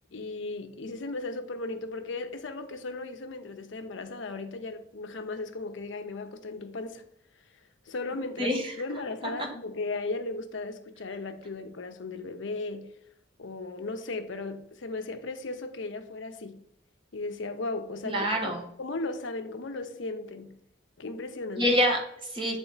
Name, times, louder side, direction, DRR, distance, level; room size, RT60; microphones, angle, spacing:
voice 1, 0.1-7.0 7.8-12.9 13.4-16.6 17.1-20.6 21.0-21.7, left 3 dB, 70° left, 0.6 m, -36 dB
voice 2, 8.4-8.7 18.0-18.6 21.6-22.6, equal, 25° right, 1.1 m, -26 dB
7.1 x 3.7 x 3.9 m
head